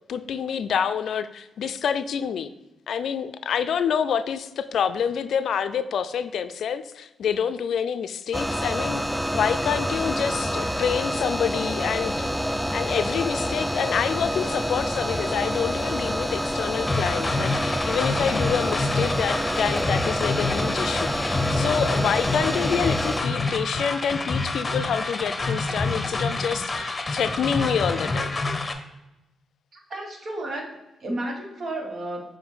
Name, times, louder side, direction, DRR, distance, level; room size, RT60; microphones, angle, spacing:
voice 1, 0.1-2.5 2.9-9.0 9.3-12.3 12.7-28.4, left 7 dB, 75° left, 11 dB, 0.4 m, -27 dB
sound 1, 8.3-23.2, equal, ahead, 0.4 m, -27 dB
sound 2, 16.9-28.7, left 3 dB, 30° left, 0.8 m, -27 dB
voice 2, 29.7-32.4, right 1 dB, 55° right, 1 dB, 1.5 m, -33 dB
7.0 x 2.6 x 5.6 m, 0.98 s
cardioid pair, 70°, 0 cm